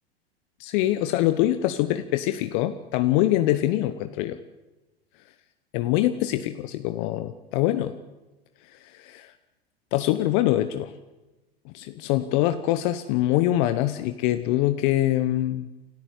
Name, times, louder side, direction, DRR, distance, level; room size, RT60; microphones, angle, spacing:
voice 1, 0.6-4.4 5.7-8.0 8.7-9.3 9.9-10.9 11.6-15.7, left 14 dB, 50° left, 10 dB, 1.2 m, -24 dB
28.5 x 13.0 x 8.3 m, 1.0 s
hypercardioid pair, 95°, 31 cm